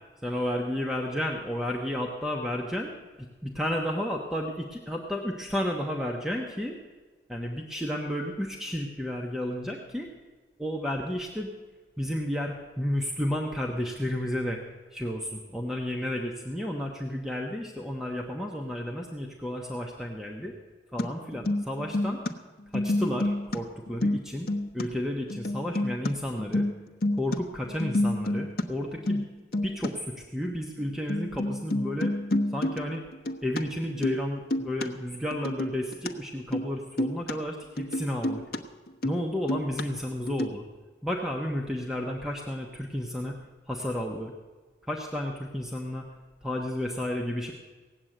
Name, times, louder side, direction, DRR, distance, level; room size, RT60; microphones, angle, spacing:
voice 1, 0.2-2.9 3.4-6.8 7.3-10.1 10.6-11.5 12.0-14.6 14.9-20.5 20.9-22.2 22.7-24.5 24.7-26.7 27.2-29.2 29.6-32.1 32.5-33.0 33.4-38.4 39.0-40.6 41.0-43.3 43.7-44.3 44.9-46.0 46.4-47.5, left 1 dB, 5° right, 0 dB, 1.0 m, -32 dB
sound 1, 21.0-21.1 21.3-22.3 22.6-23.6 23.9-24.8 25.3-26.1 26.4-27.4 27.7-28.6 28.9-29.3 29.5-29.9 30.5-30.6 30.8-30.9 31.1-33.6 33.9-34.2 34.5-34.9 35.3-36.1 36.4-36.7 37.0-37.3 37.8-38.6 38.9-39.2 39.5-39.8 40.3-40.5, left 1 dB, 55° left, 0.9 m, -29 dB
17.5 x 8.0 x 8.9 m, 1.3 s
head